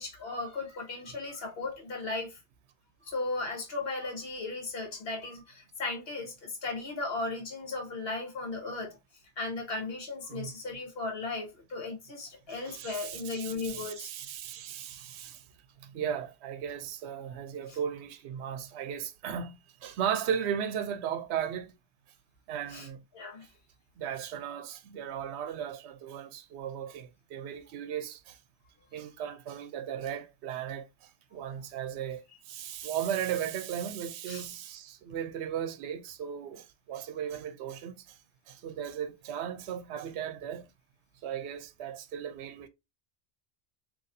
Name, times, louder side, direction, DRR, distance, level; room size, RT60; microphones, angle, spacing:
voice 1, 0.0-2.4 3.0-9.0 9.4-14.1 17.7-17.8 22.7-22.9 23.1-23.4 34.3-34.4, left 3 dB, 60° left, 1.5 m, -36 dB
voice 2, 12.5-15.4 15.8-21.7 22.5-23.0 24.0-28.4 28.9-38.2 38.5-40.7 41.2-42.7, right 9 dB, 75° right, 0.8 m, -36 dB
4.0 x 2.9 x 2.6 m
omnidirectional pair, 1.1 m